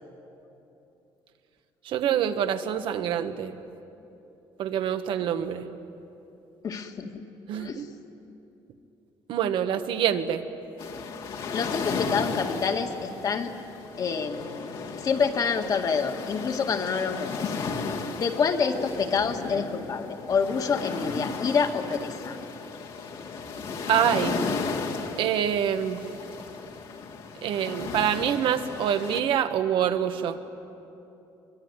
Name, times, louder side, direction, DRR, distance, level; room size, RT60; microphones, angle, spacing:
voice 1, 1.8-3.6 4.6-5.7 7.5-7.8 9.3-10.4 23.9-24.4 25.2-26.0 27.4-30.4, right 9 dB, 70° right, 8 dB, 1.4 m, -26 dB
voice 2, 6.6-7.1 7.5-7.9 11.5-13.5 14.0-14.7 14.9-17.3 18.2-22.4, left 5 dB, 45° left, 4 dB, 2.0 m, -27 dB
sound 1, 10.8-29.2, left 5 dB, 70° left, 2.5 m, -34 dB
24.0 x 22.0 x 9.8 m, 2.9 s
cardioid pair, 125°, 9 cm